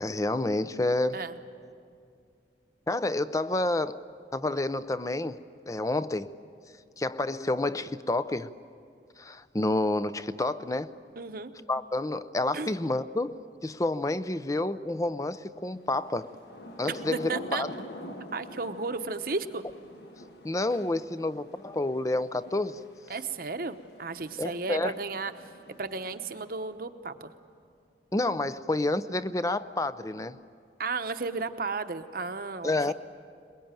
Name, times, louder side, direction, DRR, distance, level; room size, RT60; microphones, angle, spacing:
voice 1, 0.0-1.2 2.9-4.0 4.3-5.4 5.7-6.3 7.0-8.5 9.2-10.9 11.7-16.3 16.8-17.7 20.4-22.8 24.4-24.9 28.1-30.4 32.6-32.9, left 2 dB, 20° left, 14 dB, 0.5 m, -29 dB
voice 2, 11.2-11.5 12.5-12.8 16.8-17.6 18.3-19.6 23.1-25.3 25.8-27.3 30.8-32.9, right 4 dB, 55° right, 9 dB, 0.9 m, -34 dB
Thunder / Rain, 16.2-26.7, left 1 dB, 65° left, 1.5 m, -46 dB
22.5 x 21.5 x 9.0 m, 2.3 s
head